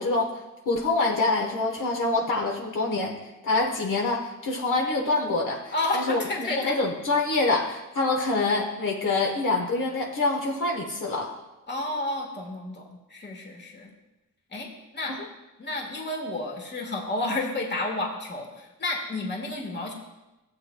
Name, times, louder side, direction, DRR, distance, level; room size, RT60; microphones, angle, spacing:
voice 1, 0.0-3.2 3.4-11.3 15.1-15.2, left 3 dB, 70° left, -1 dB, 1.4 m, -26 dB
voice 2, 5.7-6.7 11.7-13.9 14.5-15.2 15.6-19.9, left 2 dB, 35° left, 0 dB, 1.7 m, -31 dB
16.0 x 7.9 x 2.3 m, 1.0 s
wide cardioid pair, 125°, 33 cm